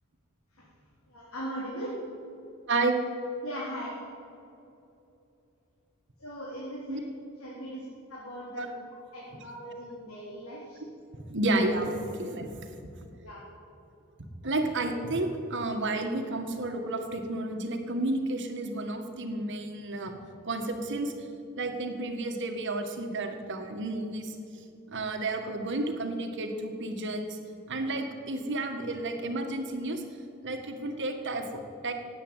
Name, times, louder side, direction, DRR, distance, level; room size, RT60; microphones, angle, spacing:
voice 1, 1.1-2.0 3.4-4.0 6.2-7.0 7.4-8.7 9.1-10.8 13.2-13.4, equal, 70° left, -6 dB, 3.8 m, -39 dB
voice 2, 11.3-12.5 14.4-20.1 20.5-21.1 21.6-24.4 24.9-27.4 27.7-30.0 30.4-31.9, right 2 dB, 55° right, 5 dB, 1.8 m, -31 dB
17.0 x 8.8 x 9.1 m, 2.7 s
head